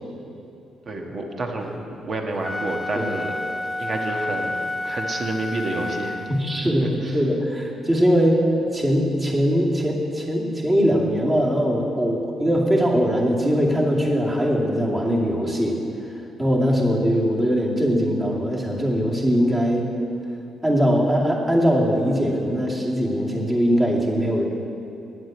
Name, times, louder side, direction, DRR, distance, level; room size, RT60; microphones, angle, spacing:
voice 1, 0.9-1.7 2.0-3.3 3.8-6.2 6.8-7.2, right 2 dB, 45° right, 2 dB, 1.4 m, -29 dB
Wind instrument woodwind instrument, 2.3-6.7, left 2 dB, 20° left, 0.4 m, -30 dB
voice 2, 6.3-15.7 16.4-19.9 20.6-24.4, equal, 20° right, -3 dB, 2.3 m, -21 dB
10.5 x 7.8 x 7.9 m, 2.8 s
cardioid pair, 90°, 0 cm